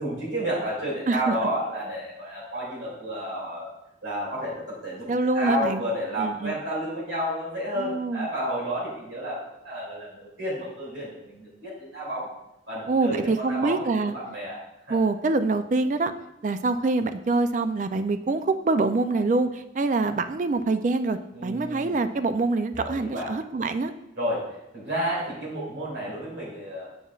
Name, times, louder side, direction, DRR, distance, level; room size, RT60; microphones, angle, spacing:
voice 1, 0.0-3.7 4.0-4.5 4.8-5.0 5.3-12.3 12.7-14.6 14.9-15.0 21.3-22.0 22.8-23.3 24.2-24.5 24.7-26.9, equal, 70° right, -6 dB, 2.5 m, -31 dB
voice 2, 5.1-5.9 6.2-6.6 7.8-8.3 12.9-14.1 14.9-16.1 16.4-23.9, right 3 dB, 40° right, 10 dB, 0.3 m, -25 dB
7.4 x 7.0 x 2.3 m, 0.87 s
head